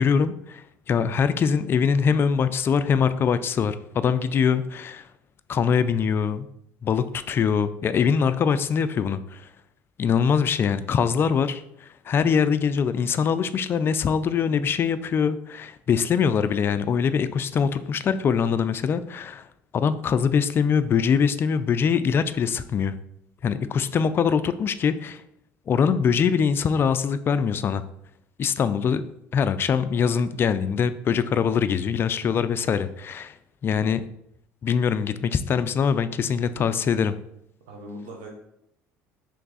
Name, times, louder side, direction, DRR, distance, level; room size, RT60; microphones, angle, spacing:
voice 1, 0.0-5.1 5.5-6.5 6.8-9.4 10.0-19.5 19.7-22.9 23.4-25.2 25.7-27.8 28.4-29.0 29.3-33.3 33.6-34.0 34.6-37.2, left 6 dB, 40° left, 13 dB, 0.3 m, -23 dB
voice 2, 37.7-38.3, right 1 dB, 85° right, 1 dB, 0.9 m, -40 dB
3.4 x 3.1 x 4.0 m, 0.77 s
supercardioid pair, 85°, 6 cm